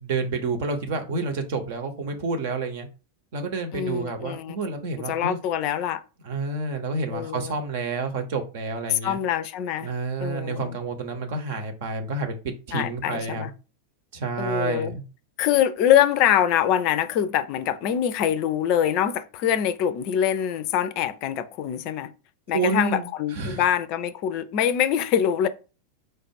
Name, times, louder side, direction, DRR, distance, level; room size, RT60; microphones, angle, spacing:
voice 1, 0.0-2.9 3.3-5.4 6.2-9.2 9.8-12.4 12.7-13.5 14.1-15.0 22.5-23.6, right 3 dB, 50° right, 0.9 m, -29 dB
voice 2, 3.7-4.6 5.1-6.0 7.1-7.6 8.9-9.9 10.2-10.8 12.7-13.5 14.4-14.9 15.4-22.1 22.5-25.5, left 10 dB, 45° left, 0.5 m, -24 dB
4.6 x 2.4 x 4.7 m
figure-of-eight pair, 90°, 0 cm